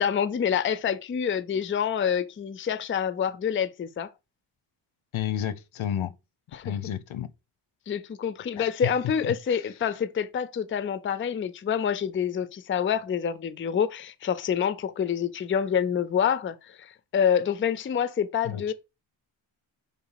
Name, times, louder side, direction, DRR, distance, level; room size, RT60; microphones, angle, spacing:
voice 1, 0.0-4.1 6.5-6.7 7.9-18.7, left 8 dB, 25° left, 0.5 m, -27 dB
voice 2, 5.1-6.1 6.6-7.3 8.6-8.9 9.3-9.7 18.4-18.7, left 10 dB, 75° left, 0.9 m, -31 dB
6.0 x 3.7 x 5.7 m
wide cardioid pair, 165°, 47 cm